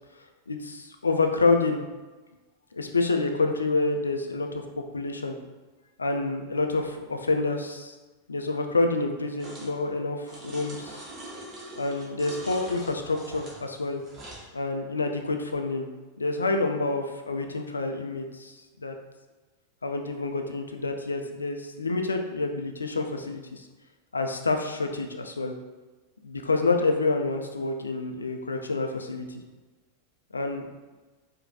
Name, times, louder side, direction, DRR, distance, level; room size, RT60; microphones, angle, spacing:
voice 1, 0.5-1.8 2.7-4.6 4.9-5.3 6.0-7.9 8.3-11.0 11.8-14.0 14.5-15.9 16.2-18.6 18.8-18.9 19.8-23.6 24.1-25.5 26.2-29.4 30.3-30.7, left 3 dB, 75° left, 4 dB, 0.3 m, -28 dB
sound 1, 9.4-9.7 10.3-14.5, right 1 dB, 30° right, 0.9 m, -43 dB
4.6 x 2.3 x 2.6 m, 1.2 s
figure-of-eight pair, 90°, 0 cm